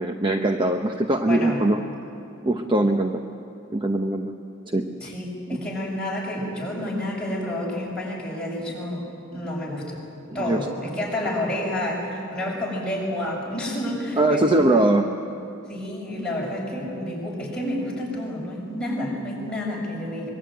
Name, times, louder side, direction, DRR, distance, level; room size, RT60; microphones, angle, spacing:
voice 1, 0.0-1.8 2.4-3.2 3.7-4.3 4.7-5.1 5.5-5.6 10.4-10.7 14.2-15.1, right 1 dB, 20° right, 4 dB, 0.9 m, -22 dB
voice 2, 1.3-1.6 5.0-9.1 9.3-10.0 10.3-14.8 15.7-20.3, left 1 dB, 5° left, -4 dB, 7.0 m, -29 dB
24.5 x 23.0 x 9.1 m, 2.8 s
head